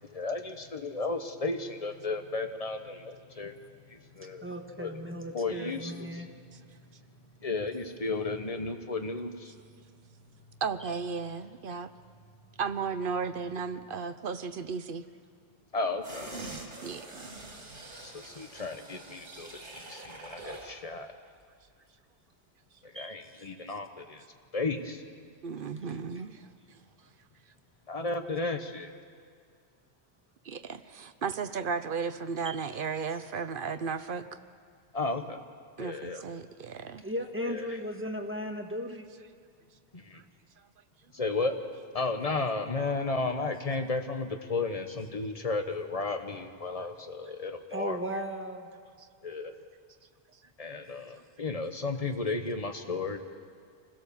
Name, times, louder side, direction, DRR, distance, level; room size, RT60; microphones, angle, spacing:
voice 1, 0.0-3.6 3.9-4.4 4.8-4.9 5.3-6.1 7.4-9.5 15.7-16.3 18.0-21.1 22.8-24.2 24.5-25.0 27.9-28.9 34.9-35.4 35.8-36.2 37.4-37.7 39.9-40.2 41.1-41.5 41.9-48.0 49.2-49.5 50.6-53.2, left 3 dB, 35° left, 6 dB, 1.2 m, -33 dB
voice 2, 4.4-6.3 10.8-10.9 19.6-19.7 22.9-23.8 25.9-26.0 32.4-32.6 37.0-39.0 47.7-48.7 50.8-51.0, equal, 10° right, 2 dB, 1.5 m, -37 dB
voice 3, 10.6-11.9 12.6-15.0 16.8-17.3 25.4-26.5 30.4-34.2 35.8-37.0 40.1-40.2, right 5 dB, 55° right, 11 dB, 0.9 m, -34 dB
sound 1, 16.0-20.8 21.1-21.2, right 2 dB, 75° right, 3.0 m, -44 dB
25.5 x 16.0 x 7.1 m, 2.1 s
omnidirectional pair, 1.2 m